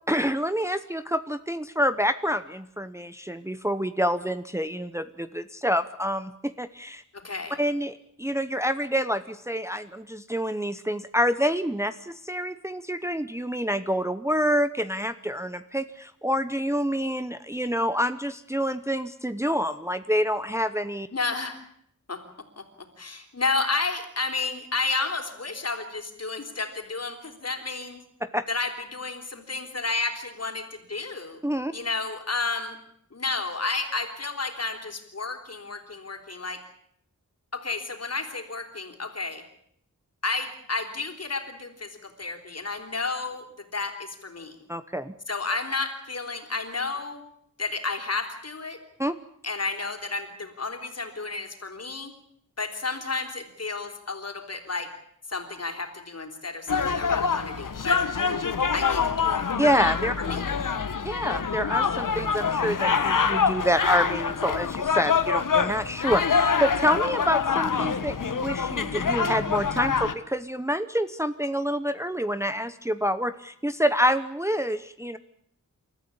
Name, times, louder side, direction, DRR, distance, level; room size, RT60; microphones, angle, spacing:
voice 1, 0.1-7.0 7.6-21.1 28.2-28.4 31.4-31.7 44.7-45.1 49.0-49.1 59.6-60.1 61.0-75.2, equal, 10° right, 11 dB, 0.8 m, -27 dB
voice 2, 7.1-7.6 21.1-21.6 22.1-22.2 22.6-22.7 23.0-28.0 28.5-31.4 31.7-32.8 33.1-36.6 37.5-39.4 40.2-44.6 45.3-47.2 47.6-48.8 49.4-52.1 52.6-54.9 55.3-58.0 58.7-59.5 60.2-60.4, left 3 dB, 50° left, 5 dB, 3.9 m, -31 dB
sound 1, 56.7-70.1, left 6 dB, 75° left, 1.5 m, -25 dB
29.5 x 13.5 x 8.6 m, 0.71 s
wide cardioid pair, 100°, 32 cm